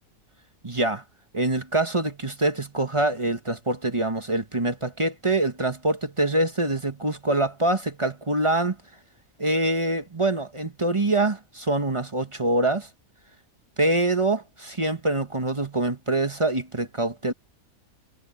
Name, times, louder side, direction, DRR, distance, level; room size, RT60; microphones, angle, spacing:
voice 1, 0.6-1.0 1.3-8.8 9.4-12.9 13.8-17.3, right 2 dB, 25° right, 1.2 m, -25 dB
omnidirectional pair, 1.5 m